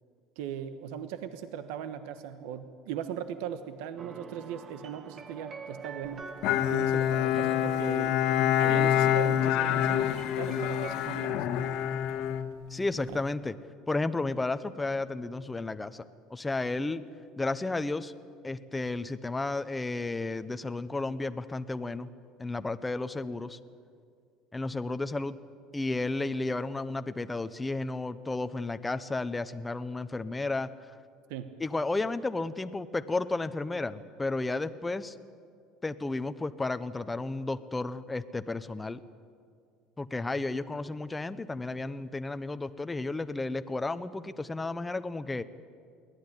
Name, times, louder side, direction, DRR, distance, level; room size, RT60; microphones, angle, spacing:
voice 1, 0.4-6.3 6.7-8.2 8.6-11.5 13.1-13.2 31.3-31.5, right 9 dB, 80° right, 9 dB, 1.2 m, -39 dB
sound 1, 4.0-10.9, right 6 dB, 35° right, 1.4 m, -45 dB
Bowed string instrument, 6.4-13.1, left 11 dB, 65° left, 1.5 m, -27 dB
voice 2, 12.7-13.5 13.9-16.0 16.3-17.0 17.4-18.1 18.4-22.1 22.4-23.6 24.5-25.4 25.7-30.7 31.6-35.2 35.8-39.0 40.0-45.4, left 2 dB, 10° left, 10 dB, 0.8 m, -32 dB
22.5 x 17.5 x 9.9 m, 2.2 s
cardioid pair, 140°, 0 cm